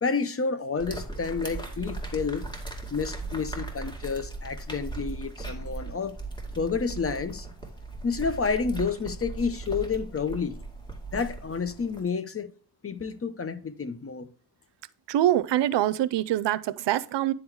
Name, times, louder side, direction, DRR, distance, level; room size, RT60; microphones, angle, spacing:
voice 1, 0.0-2.5 2.9-6.2 6.6-7.5 8.0-10.6 11.1-12.5 12.8-14.3, left 5 dB, 30° left, 0.8 m, -30 dB
sound 1, 0.8-12.0, right 3 dB, 10° left, 2.3 m, -38 dB
voice 2, 15.1-17.3, right 12 dB, 75° right, 0.6 m, -24 dB
10.0 x 4.0 x 4.6 m
cardioid pair, 80°, 42 cm